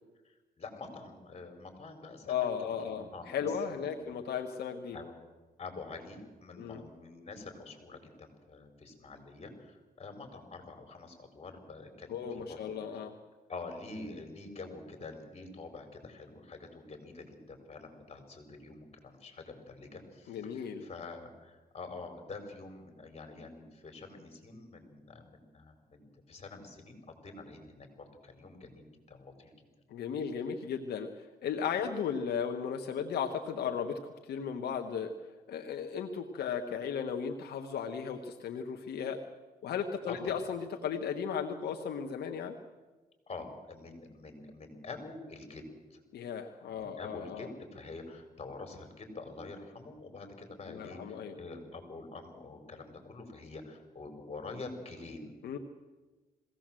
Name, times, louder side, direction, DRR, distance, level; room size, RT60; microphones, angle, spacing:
voice 1, 0.2-2.5 2.8-4.2 4.9-5.1 5.6-13.0 13.5-29.5 40.1-40.2 43.3-45.6 45.9-46.0 46.7-55.4, left 3 dB, 40° left, 5 dB, 5.0 m, -46 dB
voice 2, 2.3-5.0 6.6-6.8 12.1-13.1 20.3-20.9 29.9-35.1 35.5-39.2 39.6-42.6 46.1-47.5 50.7-51.4 55.4-55.6, left 7 dB, 80° left, 5 dB, 1.3 m, -35 dB
21.5 x 17.0 x 7.6 m, 1.2 s
cardioid pair, 95°, 16 cm